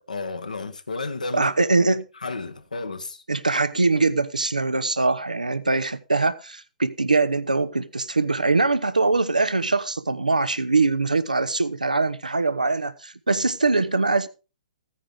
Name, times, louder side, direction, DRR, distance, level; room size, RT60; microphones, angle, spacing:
voice 1, 0.1-1.5 2.2-3.2, left 3 dB, 80° left, 1.6 m, -32 dB
voice 2, 1.3-2.1 3.3-14.3, right 3 dB, 85° right, 0.8 m, -22 dB
15.5 x 9.7 x 3.5 m
figure-of-eight pair, 120°, 4 cm